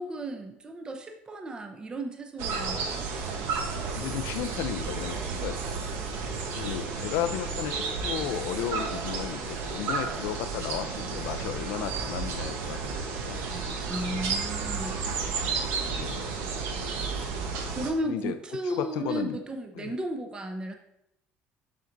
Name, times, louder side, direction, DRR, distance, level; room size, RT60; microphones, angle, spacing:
voice 1, 0.0-3.1 13.8-15.0 17.8-20.7, right 1 dB, 20° right, 5 dB, 0.7 m, -34 dB
sound 1, 2.4-17.9, right 4 dB, 80° right, 1.0 m, -32 dB
voice 2, 3.9-5.6 6.5-13.5 15.8-16.3 18.0-18.4 18.6-19.4 19.8-20.0, left 11 dB, 90° left, 10 dB, 0.5 m, -34 dB
7.3 x 5.8 x 2.6 m, 0.80 s
cardioid pair, 125°, 4 cm